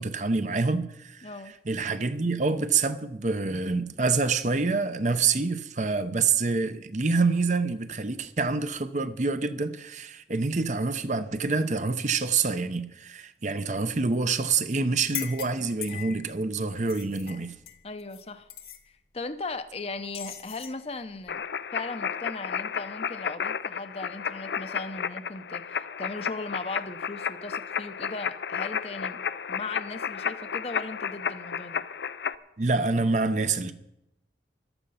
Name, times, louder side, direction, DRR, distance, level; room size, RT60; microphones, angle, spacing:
voice 1, 0.0-1.3 1.7-17.5 32.6-33.7, right 4 dB, 40° right, 0.7 m, -27 dB
voice 2, 1.2-1.5 17.8-18.5 19.1-21.4 21.7-29.2 29.5-31.8, left 3 dB, 35° left, 0.7 m, -38 dB
sound 1, 15.0-16.3 16.7-18.2 18.5-18.8 20.1-20.8, left 11 dB, 55° left, 1.3 m, -39 dB
sound 2, 21.3-32.3, left 7 dB, 75° left, 0.5 m, -32 dB
14.0 x 12.0 x 5.6 m
head